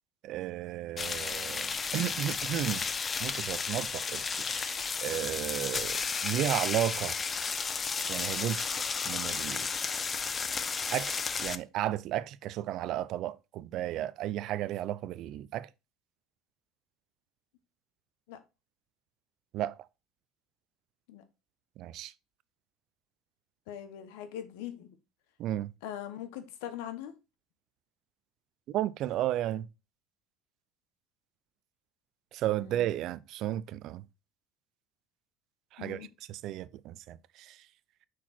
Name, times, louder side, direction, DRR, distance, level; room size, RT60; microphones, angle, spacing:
voice 1, 0.2-2.8 3.2-7.2 8.1-8.7 9.0-9.7 10.9-15.7 19.5-19.8 21.8-22.1 25.4-25.7 28.7-29.7 32.3-34.0 35.7-37.6, right 13 dB, 60° right, 0.5 m, -34 dB
sound 1, 1.0-11.6, left 5 dB, 25° left, 0.5 m, -33 dB
voice 2, 23.7-24.9 25.8-27.1 32.6-32.9 35.8-36.1, left 10 dB, 85° left, 1.1 m, -41 dB
6.0 x 4.6 x 4.3 m
cardioid pair, 120°, 0 cm